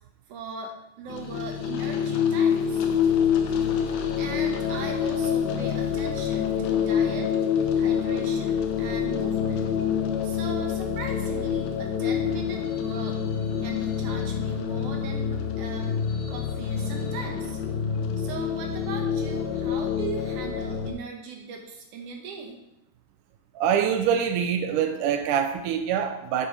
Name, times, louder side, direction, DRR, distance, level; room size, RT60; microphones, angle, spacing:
voice 1, 0.3-2.9 3.9-7.3 7.8-9.7 10.2-13.2 13.6-16.0 16.3-17.6 18.2-22.6, right 4 dB, 65° right, 2 dB, 2.5 m, -39 dB
sound 1, 1.1-20.9, left 8 dB, 80° left, 2.7 m, -26 dB
voice 2, 23.6-26.5, right 8 dB, 85° right, 6 dB, 1.8 m, -25 dB
7.7 x 7.1 x 4.8 m, 0.87 s
omnidirectional pair, 4.2 m